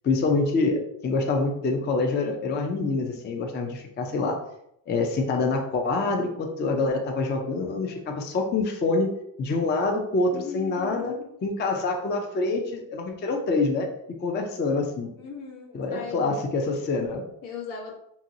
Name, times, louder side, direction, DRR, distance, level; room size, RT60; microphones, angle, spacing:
voice 1, 0.0-4.4 4.9-9.1 9.4-11.1 11.4-13.9 14.2-15.1 15.7-17.2, left 3 dB, 25° left, 2 dB, 0.4 m, -26 dB
voice 2, 10.3-11.2 15.2-16.3 17.4-17.9, left 6 dB, 75° left, 1 dB, 1.0 m, -38 dB
2.8 x 2.7 x 2.6 m, 0.75 s
cardioid pair, 95°, 48 cm